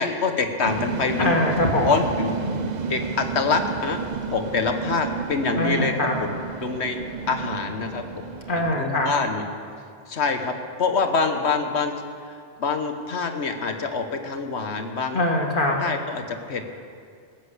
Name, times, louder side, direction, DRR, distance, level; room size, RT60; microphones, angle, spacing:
voice 1, 0.0-1.4 1.8-2.4 2.9-4.0 4.3-5.9 6.3-7.0 7.3-9.4 10.1-10.5 10.8-11.9 12.6-15.2 15.8-16.7, left 4 dB, 65° left, 6 dB, 1.5 m, -25 dB
sound 1, 0.6-8.7, right 6 dB, 45° right, 0.7 m, -31 dB
voice 2, 1.2-1.9 5.5-6.1 8.5-9.1 15.1-15.8, left 1 dB, 45° left, 1 dB, 2.0 m, -22 dB
19.5 x 7.7 x 8.1 m, 2.2 s
omnidirectional pair, 1.2 m